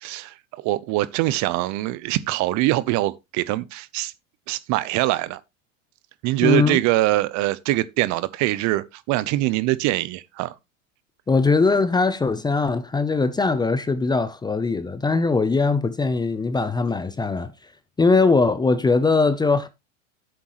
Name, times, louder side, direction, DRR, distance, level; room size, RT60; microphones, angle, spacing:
voice 1, 0.0-4.1 4.5-5.4 6.2-10.5, right 17 dB, 45° right, 0.8 m, -23 dB
voice 2, 6.4-6.8 11.3-17.5 18.0-19.7, left 4 dB, 10° left, 0.6 m, -20 dB
10.5 x 7.8 x 3.1 m
supercardioid pair, 115°, 41 cm